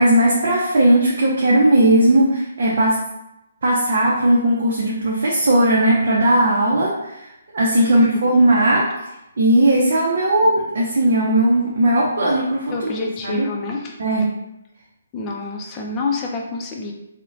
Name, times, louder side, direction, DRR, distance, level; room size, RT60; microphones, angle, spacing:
voice 1, 0.0-3.0 3.6-7.2 7.5-8.8 9.4-12.7 13.0-13.5 14.0-14.3, right 1 dB, 60° right, -4 dB, 0.5 m, -17 dB
voice 2, 7.9-8.3 12.7-14.0 15.1-16.9, left 3 dB, 20° left, 0 dB, 0.4 m, -28 dB
2.8 x 2.1 x 2.5 m, 0.90 s
figure-of-eight pair, 140°, 0 cm